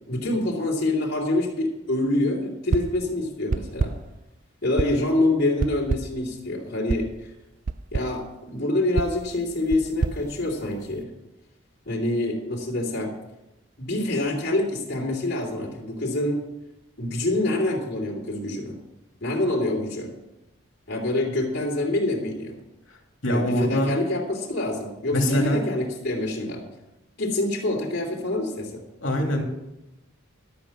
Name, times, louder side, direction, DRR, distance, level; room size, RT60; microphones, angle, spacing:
voice 1, 0.1-3.9 4.6-7.3 7.9-11.1 11.8-13.1 13.8-16.4 17.0-18.8 19.2-20.1 20.9-22.6 23.3-26.6 27.2-28.8, left 1 dB, 55° left, -4 dB, 3.0 m, -26 dB
sound 1, 2.7-3.1 3.5-4.2 4.8-5.1 5.6-6.3 6.9-7.2 7.7-8.2 9.0-11.0, right 4 dB, 40° right, 0.4 m, -29 dB
voice 2, 23.2-23.9 25.1-25.6 29.0-29.4, equal, 70° left, 2 dB, 2.7 m, -23 dB
12.5 x 8.6 x 6.0 m, 0.94 s
head